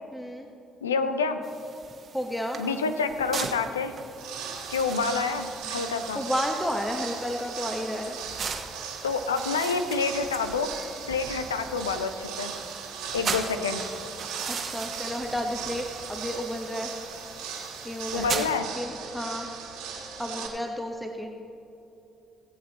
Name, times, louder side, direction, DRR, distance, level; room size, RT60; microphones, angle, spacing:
voice 1, 0.1-0.5 2.1-2.6 6.1-8.2 14.5-16.9 17.8-18.4 18.8-19.5 20.2-21.4, equal, 10° left, 3 dB, 1.1 m, -32 dB
voice 2, 0.8-1.4 2.6-3.9 4.7-6.2 9.0-10.7 11.1-12.5 13.1-13.8 18.1-18.7, left 4 dB, 85° left, 9 dB, 0.5 m, -28 dB
sound 1, 1.4-18.6, right 5 dB, 50° right, 1.2 m, -39 dB
sound 2, 4.1-20.5, right 6 dB, 70° right, 1.8 m, -38 dB
19.0 x 7.9 x 4.0 m, 2.8 s
hypercardioid pair, 45°, 0 cm